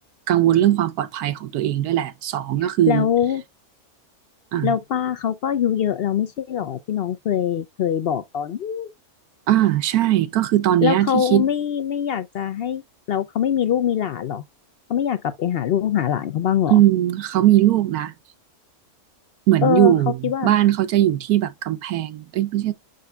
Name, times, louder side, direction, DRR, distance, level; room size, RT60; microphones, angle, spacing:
voice 1, 0.3-3.1 4.5-4.7 9.5-11.4 16.7-18.1 19.5-22.7, right 13 dB, 85° right, 1.2 m, -19 dB
voice 2, 2.6-3.4 4.6-8.9 10.8-12.8 13.1-14.4 14.9-16.8 19.6-19.9 20.2-20.5, left 9 dB, 70° left, 0.5 m, -23 dB
6.8 x 6.2 x 2.3 m
omnidirectional pair, 1.6 m